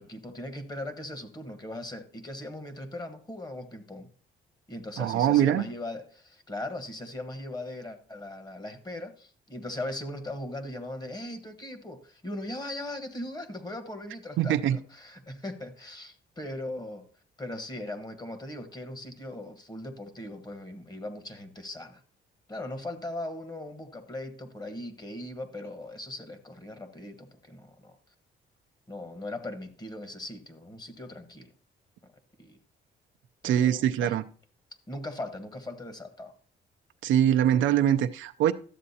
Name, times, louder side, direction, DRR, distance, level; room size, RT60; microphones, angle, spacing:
voice 1, 0.0-4.1 4.7-17.0 17.4-22.0 22.5-28.0 28.9-31.5 32.0-32.1 32.4-32.6 33.4-34.2 34.9-36.3, left 1 dB, 20° left, 1.3 m, -39 dB
voice 2, 5.0-5.6 14.4-14.8 33.4-34.2 37.0-38.5, right 10 dB, 80° right, 0.6 m, -23 dB
12.5 x 7.5 x 2.8 m
cardioid pair, 90°, 20 cm